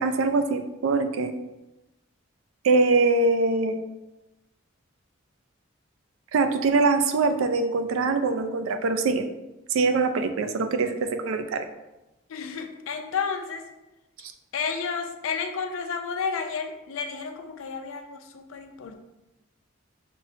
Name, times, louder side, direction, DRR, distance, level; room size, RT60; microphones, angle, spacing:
voice 1, 0.0-1.3 2.6-3.8 6.3-9.2 9.7-11.7 14.2-14.3, right 3 dB, 90° right, 8 dB, 0.4 m, -23 dB
voice 2, 12.3-13.7 14.5-19.0, left 5 dB, 85° left, 6 dB, 0.4 m, -31 dB
5.3 x 2.0 x 2.7 m, 0.99 s
head